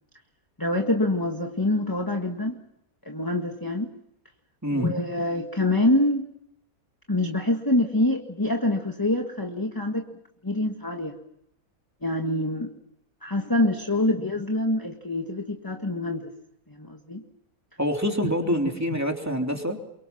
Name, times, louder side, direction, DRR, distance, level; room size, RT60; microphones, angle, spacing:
voice 1, 0.6-2.6 3.0-3.9 4.7-6.3 7.1-10.1 10.4-11.2 12.0-12.7 13.2-16.3 16.7-17.2 18.2-18.3 18.9-19.0, left 1 dB, 15° left, 3 dB, 1.7 m, -25 dB
voice 2, 17.8-19.8, equal, 10° right, 2 dB, 3.2 m, -26 dB
29.5 x 24.0 x 5.9 m, 0.80 s
omnidirectional pair, 1.6 m